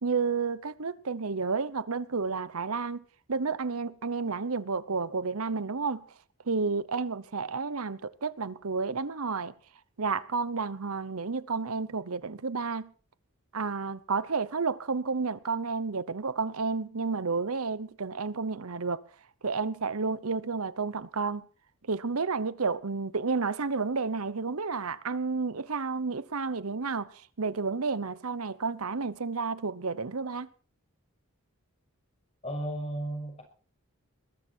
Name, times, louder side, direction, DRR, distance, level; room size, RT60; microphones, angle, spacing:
voice 1, 0.0-6.0 6.4-9.5 10.0-12.9 13.5-19.0 19.4-21.5 21.9-30.5, right 4 dB, 80° right, 0.9 m, -31 dB
voice 2, 32.4-33.4, right 1 dB, 30° left, 6.0 m, -34 dB
21.0 x 13.5 x 4.5 m
head